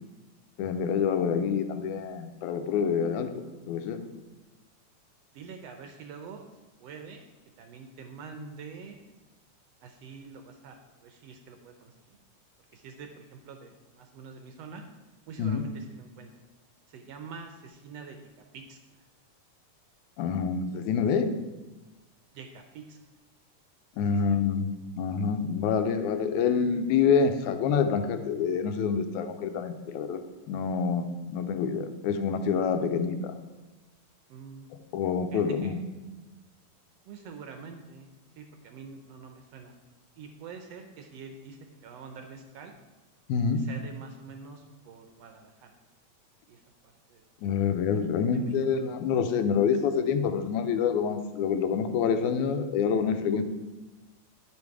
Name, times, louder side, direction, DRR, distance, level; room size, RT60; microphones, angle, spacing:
voice 1, 0.6-3.4 3.7-4.0 15.4-15.6 20.2-21.3 24.0-24.7 25.0-30.2 30.5-33.3 34.9-35.8 43.3-43.6 47.4-53.4, left 6 dB, 85° left, 8 dB, 2.1 m, -27 dB
voice 2, 5.3-6.5 6.8-7.2 7.6-9.1 9.8-12.2 12.7-14.8 15.3-16.4 16.9-19.0 22.3-23.0 24.0-24.4 31.4-31.5 34.3-34.7 35.3-35.8 37.1-38.1 38.4-39.8 40.2-42.7 43.5-45.8 46.5-47.2 48.3-48.5, right 5 dB, 75° right, 5 dB, 1.6 m, -46 dB
10.5 x 5.3 x 4.7 m, 1.1 s
omnidirectional pair, 3.4 m